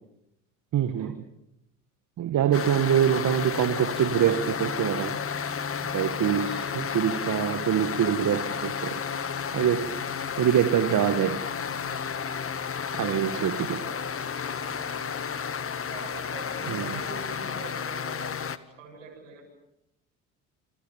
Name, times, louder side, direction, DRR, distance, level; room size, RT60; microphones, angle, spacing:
voice 1, 0.7-1.2 2.2-5.2 5.9-9.0 9.5-10.0 10.4-11.4 12.9-13.8 16.7-16.9, right 10 dB, 55° right, 11 dB, 1.8 m, -25 dB
sound 1, 2.5-18.6, left 6 dB, 35° left, 2.0 m, -32 dB
voice 2, 13.1-13.4 13.8-15.0 15.8-18.3 18.8-19.5, right 4 dB, 90° right, 0 dB, 7.7 m, -45 dB
29.0 x 27.0 x 7.2 m, 0.83 s
hypercardioid pair, 60°, 37 cm